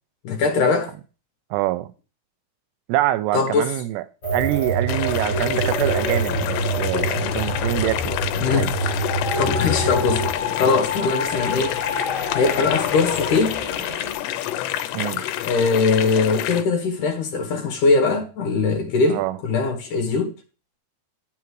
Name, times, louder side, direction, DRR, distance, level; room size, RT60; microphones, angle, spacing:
voice 1, 0.2-0.9 3.3-3.7 8.4-8.9 9.4-10.3 10.6-11.8 12.3-13.6 15.4-20.3, left 4 dB, 60° left, 2.6 m, -21 dB
voice 2, 1.5-1.9 2.9-4.0 4.3-8.2 8.5-8.7 9.8-9.9 14.9-15.2 19.1-19.4, right 15 dB, 90° right, 2.7 m, -25 dB
sound 1, 4.2-14.1, right 1 dB, 20° left, 3.8 m, -26 dB
sound 2, 4.9-16.6, left 13 dB, 90° left, 2.8 m, -28 dB
9.2 x 8.8 x 3.1 m
omnidirectional pair, 4.8 m